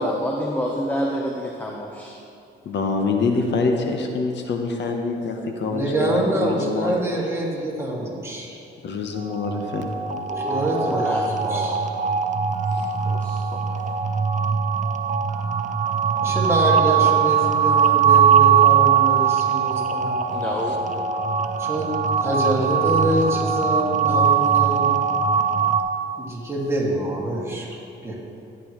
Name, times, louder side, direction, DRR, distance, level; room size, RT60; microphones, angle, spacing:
voice 1, 0.0-2.1 10.3-11.8 13.0-13.6 20.3-20.8, equal, 10° left, -1 dB, 1.0 m, -28 dB
voice 2, 2.6-7.2 8.8-9.9 12.7-12.9 20.7-20.8, left 4 dB, 65° left, 3 dB, 1.1 m, -25 dB
voice 3, 5.6-8.6 10.4-11.8 16.2-20.2 21.6-21.9 22.2-24.9 26.2-28.2, right 1 dB, 15° right, -4 dB, 2.4 m, -25 dB
sound 1, 9.2-25.8, right 7 dB, 40° right, 0.7 m, -21 dB
14.0 x 9.6 x 3.2 m, 2.6 s
cardioid pair, 90°, 20 cm